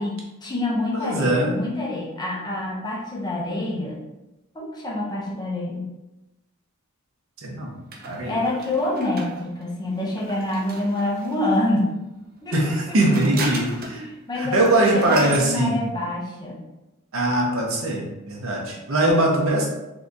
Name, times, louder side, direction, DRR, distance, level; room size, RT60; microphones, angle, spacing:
voice 1, 0.0-4.0 4.5-5.9 8.3-11.9 12.4-13.0 13.3-13.4 13.9-16.6, left 1 dB, 20° left, -4 dB, 0.7 m, -27 dB
voice 2, 0.9-1.5 7.4-7.7 8.0-8.4 12.5-14.1 14.4-15.8 17.1-19.7, right 1 dB, 70° right, -1 dB, 0.9 m, -21 dB
sound 1, 7.9-11.6 12.5-14.1 14.3-14.4 14.6-15.5, right 2 dB, 45° right, 0.6 m, -36 dB
3.8 x 2.8 x 2.5 m, 0.97 s
head